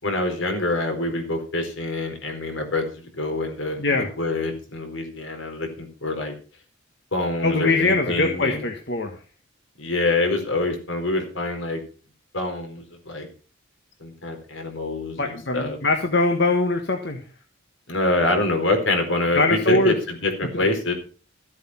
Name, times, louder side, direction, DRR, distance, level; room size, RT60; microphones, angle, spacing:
voice 1, 0.0-6.3 7.1-8.7 9.8-11.8 12.3-13.3 14.0-15.8 17.9-20.9, left 2 dB, 75° left, 4 dB, 4.2 m, -25 dB
voice 2, 7.4-9.1 15.2-17.2 19.3-19.9, left 2 dB, 55° left, 4 dB, 1.5 m, -22 dB
14.0 x 8.1 x 5.8 m, 0.37 s
head